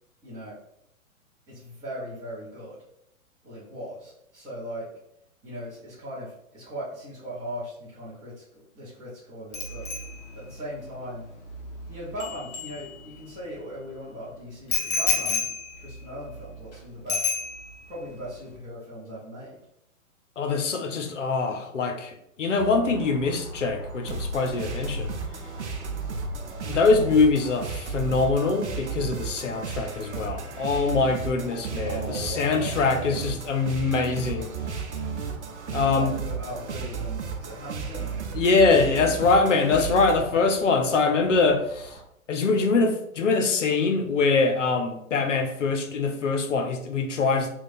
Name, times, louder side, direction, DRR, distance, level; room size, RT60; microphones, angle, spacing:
voice 1, 0.2-0.6 1.5-2.8 3.4-4.9 5.4-9.8 10.3-11.2 11.9-15.5 15.8-17.3 17.9-19.6 31.8-33.2 35.6-38.2 39.5-39.9, equal, 10° right, 0.7 m, -38 dB
Bicycle bell, 9.5-13.4 14.7-16.7 17.1-18.0 18.2-18.5, left 4 dB, 30° left, 0.7 m, -31 dB
voice 2, 20.4-25.1 26.7-34.5 35.7-36.1 38.3-41.9 42.3-47.5, left 4 dB, 60° left, 0.7 m, -23 dB
sound 1, 22.6-42.0, right 2 dB, 40° right, 1.1 m, -42 dB
sound 2, 24.1-40.2, right 5 dB, 55° right, 0.6 m, -34 dB
3.0 x 2.3 x 4.1 m
figure-of-eight pair, 120°, 42 cm